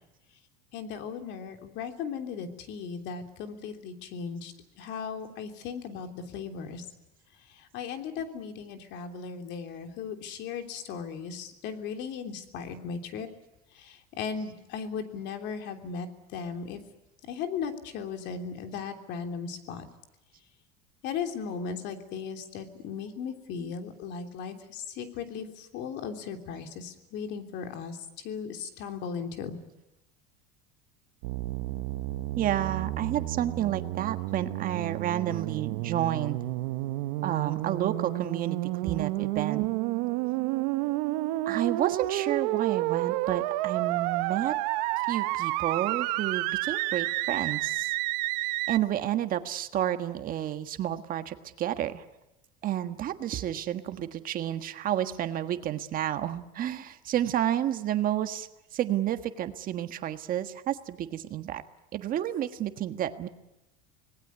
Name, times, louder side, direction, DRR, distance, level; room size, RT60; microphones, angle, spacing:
voice 1, 0.7-6.8 7.4-13.3 13.7-16.8 17.2-19.8 21.0-29.6, left 6 dB, 60° left, 6 dB, 3.3 m, -37 dB
sound 1, 31.2-48.8, right 18 dB, 75° right, 0.9 m, -30 dB
voice 2, 32.4-36.4 37.2-39.7 41.4-44.5 45.1-47.9 48.7-52.0 52.6-61.6 61.9-63.3, right 11 dB, 45° right, 9 dB, 1.5 m, -30 dB
26.5 x 19.5 x 9.6 m, 0.93 s
supercardioid pair, 125°, 21 cm